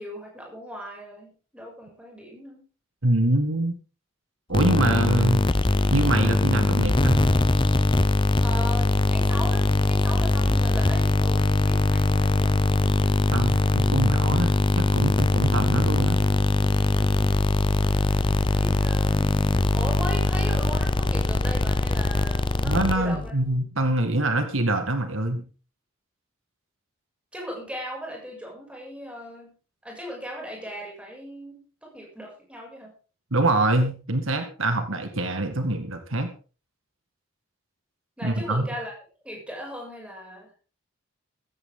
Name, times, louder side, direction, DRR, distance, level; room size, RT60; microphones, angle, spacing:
voice 1, 0.0-2.6 8.4-12.6 18.5-19.4 19.7-23.3 27.3-29.5 29.8-32.9 38.2-38.9 39.2-40.6, equal, 5° right, -2 dB, 7.1 m, -38 dB
voice 2, 3.0-3.8 4.5-5.5 5.9-7.2 13.3-16.2 22.6-25.4 33.3-36.3 38.2-38.7, right 1 dB, 70° right, 7 dB, 2.0 m, -24 dB
sound 1, 4.5-23.3, left 2 dB, 25° left, 0.6 m, -22 dB
15.5 x 15.0 x 3.9 m, 0.37 s
head